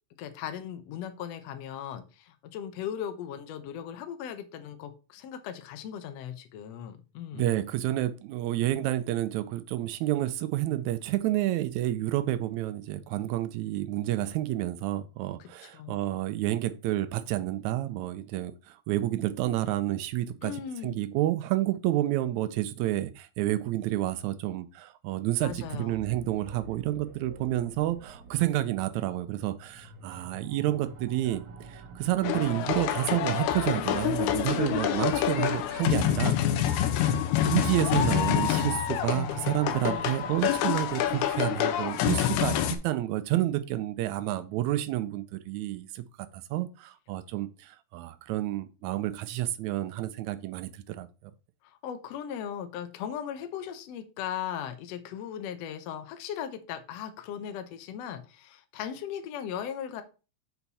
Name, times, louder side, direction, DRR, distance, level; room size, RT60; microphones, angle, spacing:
voice 1, 0.2-7.5 15.4-16.0 20.4-21.0 25.4-26.0 39.0-40.2 51.6-60.0, left 9 dB, 70° left, 1.8 m, -38 dB
voice 2, 7.3-31.4 31.7-36.4 36.7-36.9 37.4-46.0 46.5-51.1, right 14 dB, 80° right, 1.9 m, -29 dB
sound 1, 25.4-42.4, right 5 dB, 60° right, 1.5 m, -48 dB
sound 2, 32.2-42.8, left 10 dB, 85° left, 2.1 m, -27 dB
7.1 x 4.3 x 4.1 m
omnidirectional pair, 3.4 m